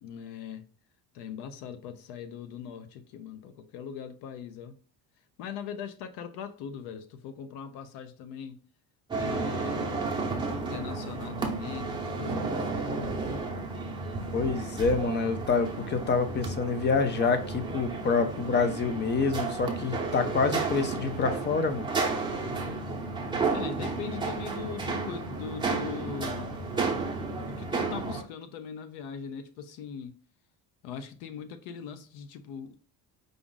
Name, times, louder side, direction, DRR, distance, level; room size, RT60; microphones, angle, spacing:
voice 1, 0.0-0.7 1.1-4.8 5.4-8.6 9.1-10.0 10.4-13.3 23.5-26.5 27.4-30.1 30.8-32.8, left 7 dB, 85° left, 0.7 m, -40 dB
sound 1, 9.1-28.2, right 3 dB, 10° right, 0.7 m, -32 dB
voice 2, 14.3-21.9, left 4 dB, 25° left, 0.5 m, -27 dB
5.0 x 2.4 x 3.9 m
cardioid pair, 145°, 40 cm